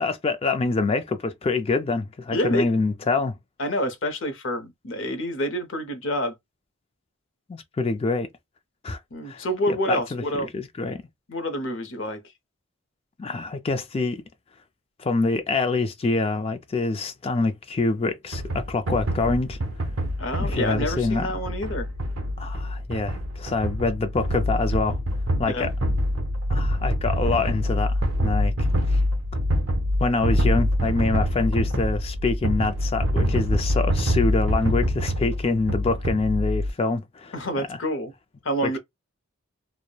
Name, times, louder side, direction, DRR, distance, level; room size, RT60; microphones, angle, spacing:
voice 1, 0.0-3.4 7.5-8.3 8.8-9.0 9.3-10.2 10.5-11.0 13.2-14.2 15.0-19.6 20.4-21.3 22.4-25.0 25.4-25.7 26.5-27.9 28.2-29.0 30.0-37.3 37.7-37.8 38.6-38.8, left 3 dB, 25° left, 0.3 m, -25 dB
voice 2, 2.3-2.7 3.6-6.3 9.1-10.5 11.3-12.2 20.2-21.9 25.4-25.7 37.3-38.1 38.4-38.8, equal, 60° left, 0.7 m, -27 dB
sound 1, 18.3-36.7, equal, 75° right, 0.7 m, -25 dB
3.1 x 2.1 x 2.2 m
head